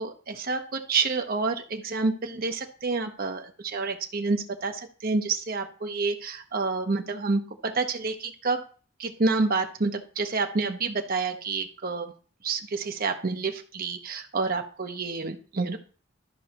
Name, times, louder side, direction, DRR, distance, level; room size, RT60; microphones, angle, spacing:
voice 1, 0.0-8.6 9.0-12.1 12.4-15.8, right 3 dB, 50° right, 5 dB, 0.8 m, -28 dB
13.0 x 5.4 x 2.9 m, 0.39 s
head